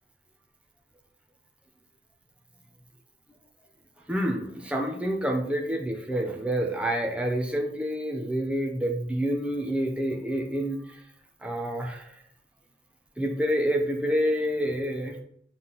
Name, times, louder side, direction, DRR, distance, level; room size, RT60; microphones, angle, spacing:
voice 1, 4.1-11.0 11.4-12.1 13.2-15.2, equal, 5° right, 1 dB, 0.7 m, -28 dB
7.7 x 4.2 x 4.0 m, 0.66 s
head